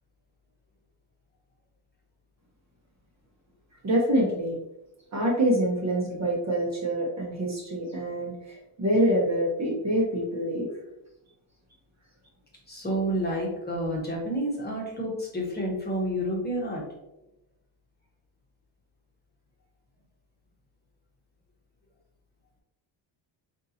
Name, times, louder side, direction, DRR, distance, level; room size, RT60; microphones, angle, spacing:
voice 1, 3.8-4.6 5.1-10.7, right 1 dB, 35° right, -2 dB, 1.0 m, -26 dB
voice 2, 12.7-16.8, equal, 20° left, -3 dB, 1.2 m, -29 dB
5.3 x 2.7 x 2.8 m, 0.90 s
cardioid pair, 115°, 50 cm